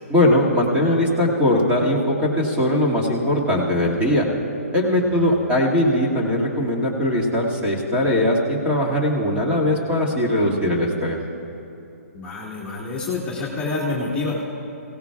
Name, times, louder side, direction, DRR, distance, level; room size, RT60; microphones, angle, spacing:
voice 1, 0.1-4.2 4.7-11.2, left 1 dB, 15° right, -3 dB, 2.2 m, -20 dB
voice 2, 12.1-14.4, left 3 dB, 15° left, -6 dB, 1.7 m, -27 dB
23.0 x 17.0 x 2.4 m, 2.9 s
hypercardioid pair, 145°, 8 cm